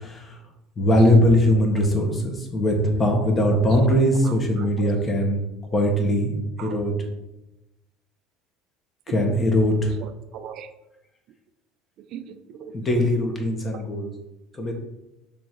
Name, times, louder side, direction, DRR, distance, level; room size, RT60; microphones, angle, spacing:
voice 1, 0.8-2.1 2.5-5.4 5.7-6.3 6.6-6.9 9.1-9.9 12.7-14.1 14.6-14.7, equal, 30° left, 1.6 m, -20 dB
voice 2, 4.2-4.9 6.6-6.8 9.1-9.3 10.0-10.7 12.0-12.7, right 9 dB, 55° right, 0.5 m, -39 dB
6.0 x 3.8 x 4.6 m
figure-of-eight pair, 65°, 0 cm